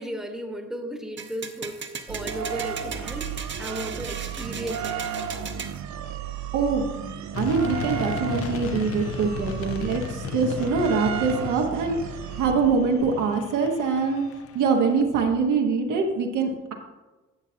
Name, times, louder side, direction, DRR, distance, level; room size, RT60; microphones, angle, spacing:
voice 1, 0.0-5.4, right 1 dB, ahead, 4 dB, 1.1 m, -35 dB
sound 1, 1.2-5.8, right 5 dB, 40° right, 0.9 m, -37 dB
sound 2, 2.1-13.0, right 8 dB, 65° right, 0.6 m, -34 dB
voice 2, 6.5-12.0 12.4-14.2 14.5-16.7, right 5 dB, 85° right, 2 dB, 1.3 m, -24 dB
sound 3, 7.3-15.0, left 7 dB, 50° left, 0.6 m, -35 dB
12.0 x 7.2 x 2.8 m, 1.2 s
cardioid pair, 90°, 30 cm